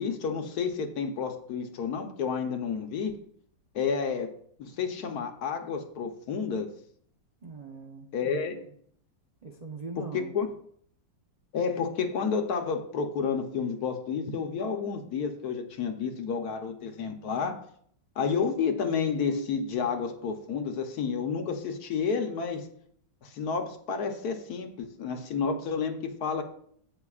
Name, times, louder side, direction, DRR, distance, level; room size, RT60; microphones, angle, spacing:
voice 1, 0.0-3.3 3.7-4.3 4.6-6.7 8.1-8.6 10.1-10.5 11.5-17.6 18.2-22.7 23.2-26.4, left 6 dB, 60° left, 5 dB, 1.3 m, -30 dB
voice 2, 7.4-8.7 9.4-10.3, right 4 dB, 50° right, 1 dB, 0.4 m, -42 dB
16.5 x 6.0 x 2.4 m, 0.63 s
omnidirectional pair, 2.0 m